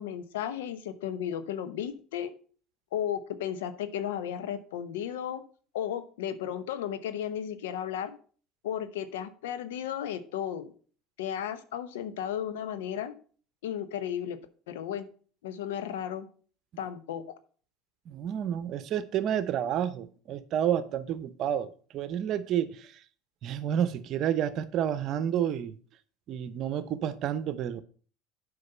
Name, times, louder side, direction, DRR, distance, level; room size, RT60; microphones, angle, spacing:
voice 1, 0.0-2.3 2.9-5.4 5.7-8.2 8.6-10.7 11.2-13.1 13.6-14.4 14.7-15.1 15.4-16.3 16.8-17.3, left 9 dB, 85° left, 0.8 m, -34 dB
voice 2, 18.1-23.0 23.4-25.7 26.3-27.8, right 9 dB, 55° right, 0.8 m, -30 dB
7.9 x 5.3 x 5.4 m
hypercardioid pair, 85°, 0 cm